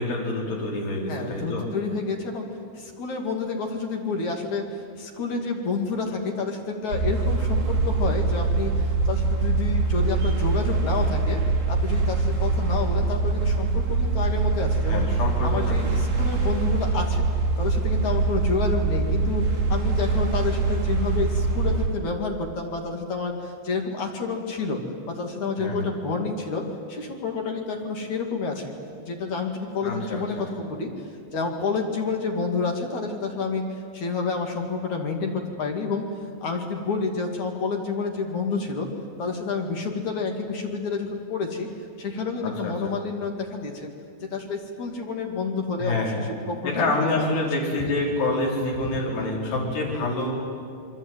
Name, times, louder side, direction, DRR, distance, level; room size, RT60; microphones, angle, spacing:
voice 1, 0.0-1.7 14.8-15.8 25.6-25.9 29.8-30.5 42.4-42.9 45.8-46.2 46.6-50.5, left 2 dB, 65° left, -2 dB, 6.6 m, -27 dB
voice 2, 1.1-2.4 2.7-11.4 11.7-15.0 15.4-17.2 17.6-26.6 26.9-30.9 31.3-36.1 36.4-38.9 39.2-41.7 42.0-43.9 44.2-47.4 47.7-47.8, left 4 dB, 45° left, 2 dB, 3.3 m, -29 dB
sound 1, 6.9-21.9, right 3 dB, 60° right, 5.9 m, -23 dB
27.5 x 23.5 x 9.2 m, 2.3 s
omnidirectional pair, 5.2 m